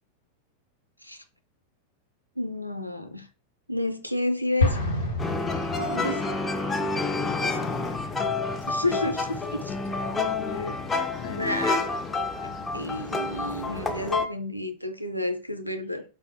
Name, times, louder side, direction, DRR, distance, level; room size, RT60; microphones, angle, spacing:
voice 1, 2.4-3.3 3.7-4.8 5.8-6.2 8.7-9.7 11.4-11.8 12.7-16.0, left 1 dB, 90° right, 0.4 m, -30 dB
Explosion, 4.6-6.4, left 2 dB, 75° left, 1.1 m, -27 dB
sound 1, 5.2-14.3, left 3 dB, 15° left, 0.5 m, -29 dB
voice 2, 7.4-8.2 9.9-11.6, left 6 dB, 60° left, 0.6 m, -39 dB
4.7 x 2.0 x 2.7 m
figure-of-eight pair, 90°, 0 cm